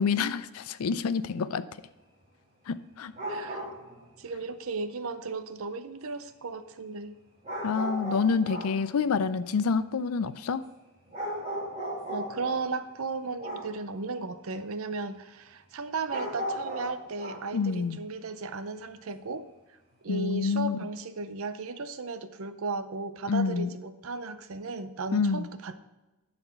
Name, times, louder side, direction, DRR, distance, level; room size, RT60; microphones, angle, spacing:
voice 1, 0.0-1.6 2.7-3.1 7.6-10.6 17.5-18.0 20.1-20.8 23.3-23.7 25.1-25.4, left 5 dB, 80° left, 14 dB, 0.5 m, -27 dB
sound 1, 3.1-4.0 7.4-8.8 11.1-12.7 13.4-13.8 16.1-17.5, equal, 30° right, 2.3 m, -36 dB
voice 2, 3.3-3.7 4.2-7.1 12.1-19.5 20.0-25.7, right 3 dB, 70° right, 11 dB, 0.6 m, -35 dB
11.0 x 4.2 x 5.8 m, 1.1 s
head